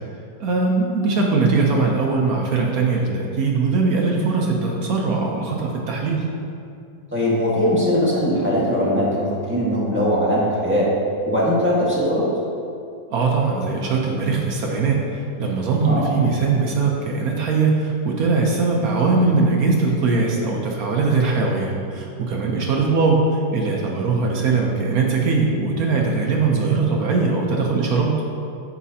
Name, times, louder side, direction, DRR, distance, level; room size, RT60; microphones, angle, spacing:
voice 1, 0.4-6.2 13.1-28.2, right 4 dB, 60° right, -1 dB, 1.1 m, -21 dB
voice 2, 7.1-10.9 11.2-12.3 15.8-16.1, equal, 5° right, -8 dB, 1.5 m, -20 dB
8.9 x 7.1 x 2.8 m, 2.4 s
omnidirectional pair, 2.1 m